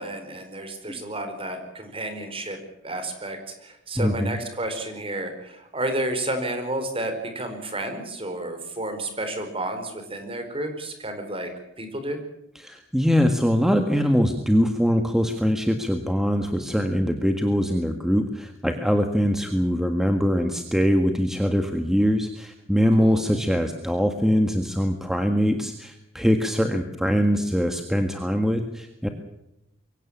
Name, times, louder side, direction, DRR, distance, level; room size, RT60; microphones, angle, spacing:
voice 1, 0.0-2.6 2.8-11.5 11.8-12.2 23.0-23.2, right 1 dB, 30° right, 7 dB, 4.7 m, -31 dB
voice 2, 4.0-4.4 12.5-29.1, equal, ahead, 5 dB, 1.7 m, -22 dB
23.5 x 17.0 x 8.7 m, 0.85 s
head